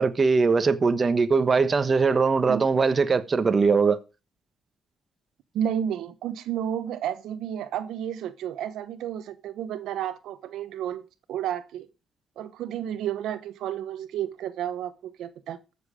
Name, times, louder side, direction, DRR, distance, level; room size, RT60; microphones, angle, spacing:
voice 1, 0.0-4.0, right 4 dB, 35° right, 1.2 m, -21 dB
voice 2, 5.5-11.0 11.3-11.9 12.4-15.6, right 10 dB, 80° right, 0.9 m, -31 dB
13.5 x 7.1 x 5.1 m
cardioid pair, 90°, 0 cm